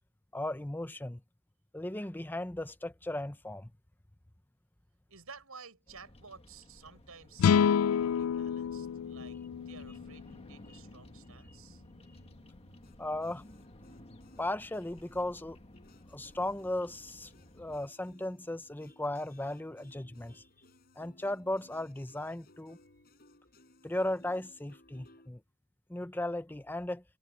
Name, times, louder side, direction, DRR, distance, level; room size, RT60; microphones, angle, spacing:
voice 1, 0.3-1.2 1.7-3.7 13.0-13.4 14.4-15.6 16.1-17.3 17.6-20.4 21.0-22.8 23.8-25.4 25.9-27.0, left 1 dB, 10° left, 0.7 m, -36 dB
voice 2, 5.1-9.4 9.7-11.8, right 5 dB, 75° right, 7.2 m, -53 dB
Bird vocalization bird call bird song, 5.9-17.9, left 1 dB, 25° left, 1.6 m, -55 dB
sound 1, 7.4-10.7, left 7 dB, 70° left, 0.3 m, -28 dB
sound 2, 12.8-25.3, left 1 dB, 45° left, 4.7 m, -62 dB
head